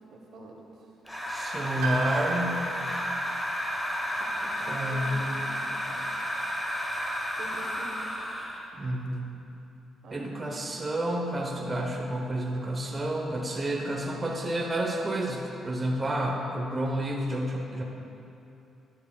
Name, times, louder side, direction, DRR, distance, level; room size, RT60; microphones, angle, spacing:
voice 1, 0.1-0.9 4.4-5.3 5.7-6.3 7.4-8.3 10.0-10.3, right 2 dB, 70° right, 0 dB, 1.1 m, -46 dB
sound 1, 1.0-8.7, equal, 5° left, 1.1 m, -32 dB
voice 2, 1.3-2.6 4.7-5.4 8.7-9.3 10.1-17.8, right 1 dB, 25° right, 0 dB, 0.9 m, -30 dB
Piano, 1.8-5.7 5.9-6.0 7.2-7.3, right 3 dB, 90° right, 0.9 m, -38 dB
10.5 x 9.5 x 2.3 m, 2.8 s
cardioid pair, 90°, 0 cm